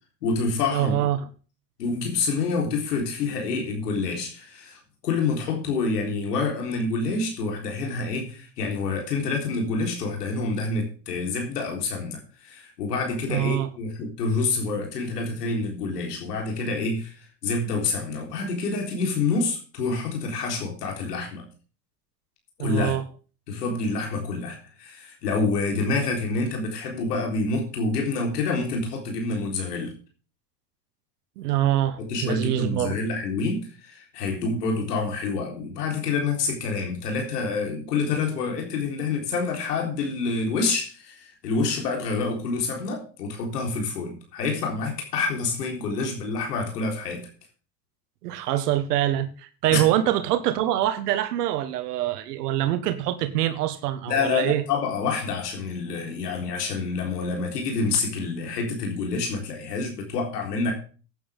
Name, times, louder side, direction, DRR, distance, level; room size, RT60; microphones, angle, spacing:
voice 1, 0.2-1.0 1.8-21.4 22.6-22.9 23.5-29.9 32.0-47.3 49.7-49.8 54.1-60.7, left 4 dB, 90° left, 2 dB, 3.9 m, -27 dB
voice 2, 0.7-1.3 13.3-13.7 22.6-23.0 31.4-32.9 48.2-54.6, right 13 dB, 80° right, 10 dB, 1.4 m, -25 dB
15.0 x 9.4 x 3.5 m, 0.36 s
hypercardioid pair, 95°, 46 cm